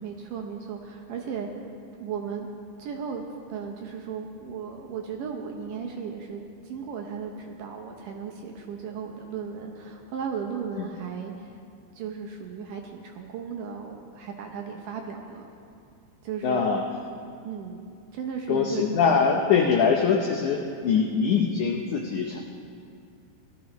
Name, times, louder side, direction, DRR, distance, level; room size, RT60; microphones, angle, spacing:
voice 1, 0.0-1.5 2.0-2.5 2.8-3.2 3.5-11.5 11.9-15.5 16.2-16.7 17.4-17.9 18.1-19.1 19.8-20.0, right 6 dB, 75° right, 1 dB, 2.0 m, -35 dB
voice 2, 16.4-16.8 18.5-22.4, left 6 dB, 90° left, 1 dB, 1.7 m, -23 dB
18.5 x 13.0 x 3.0 m, 2.4 s
omnidirectional pair, 4.5 m